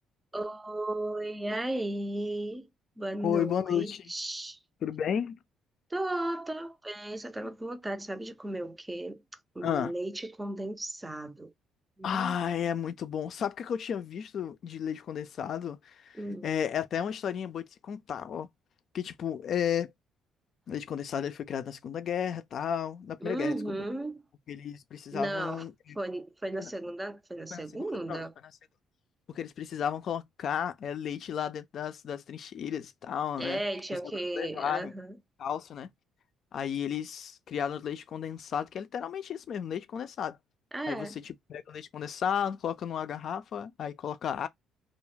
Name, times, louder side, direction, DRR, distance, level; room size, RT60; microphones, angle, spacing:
voice 1, 0.3-2.7 3.0-4.6 5.9-9.2 9.6-11.5 12.0-12.4 16.2-16.5 23.2-24.2 25.1-25.6 26.0-28.3 33.4-35.1 40.7-41.2, right 1 dB, 15° right, 0.5 m, -35 dB
voice 2, 3.2-4.1 4.8-5.4 9.6-9.9 12.0-18.5 18.9-19.9 20.7-23.8 24.5-26.0 26.6-26.7 27.5-28.2 29.3-33.6 34.3-34.9 35.4-35.9 36.5-40.4 40.9-44.5, left 8 dB, 60° left, 0.4 m, -33 dB
2.3 x 2.1 x 3.1 m
supercardioid pair, 75°, 0 cm